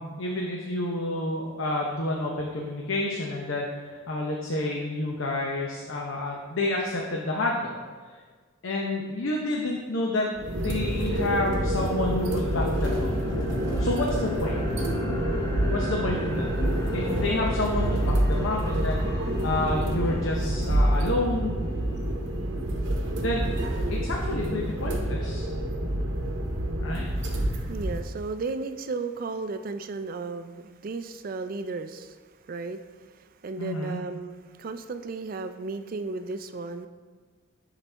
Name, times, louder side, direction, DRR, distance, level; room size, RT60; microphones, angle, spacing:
voice 1, 0.0-7.8 8.6-13.1 13.8-14.6 15.7-16.4 16.9-19.0 19.4-21.5 23.2-23.5 23.9-25.5 26.8-27.1 33.6-34.0, left 2 dB, 70° left, -1 dB, 0.7 m, -29 dB
sound 1, 9.7-9.8 10.3-22.3, left 2 dB, 20° left, 0.7 m, -37 dB
sound 2, 10.4-28.0, right 1 dB, 60° right, 0.8 m, -27 dB
voice 2, 27.3-36.9, right 3 dB, 40° right, 9 dB, 0.3 m, -35 dB
10.5 x 4.0 x 3.3 m, 1.5 s
head